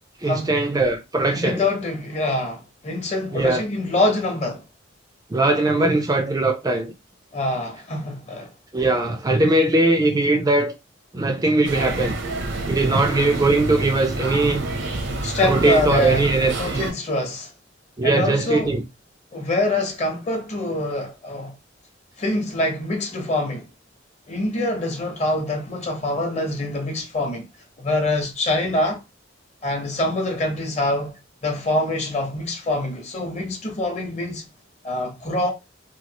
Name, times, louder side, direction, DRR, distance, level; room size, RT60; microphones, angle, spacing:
voice 1, 0.2-1.6 3.3-3.6 5.3-6.9 8.7-10.7 11.1-12.2 12.7-14.6 15.4-16.9 18.0-18.8, right 2 dB, 20° right, 0.3 m, -20 dB
voice 2, 1.3-4.6 7.3-8.5 12.9-13.1 15.2-16.3 16.6-17.5 18.0-18.7 19.3-21.5 22.2-23.7 24.3-27.4 27.8-29.0 29.6-31.2 31.4-34.4 34.8-35.5, left 1 dB, 35° left, 0.8 m, -25 dB
sound 1, 11.6-16.9, right 2 dB, 80° right, 0.7 m, -28 dB
2.9 x 2.3 x 2.8 m
head